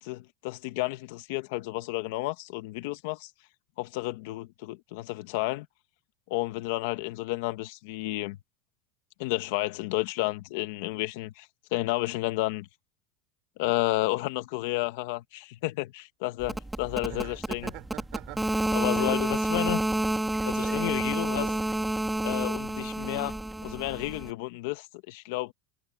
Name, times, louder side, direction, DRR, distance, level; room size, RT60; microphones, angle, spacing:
voice 1, 0.0-3.3 3.8-5.7 6.3-8.4 9.2-12.7 13.6-17.7 18.7-19.8 20.5-21.5 22.2-25.5, left 19 dB, 55° left, 1.4 m, -31 dB
sound 1, 16.4-24.3, right 1 dB, 5° right, 2.1 m, -29 dB
voice 2, 17.0-19.4 20.6-21.6, right 21 dB, 45° right, 3.8 m, -44 dB
supercardioid pair, 175°, 0 cm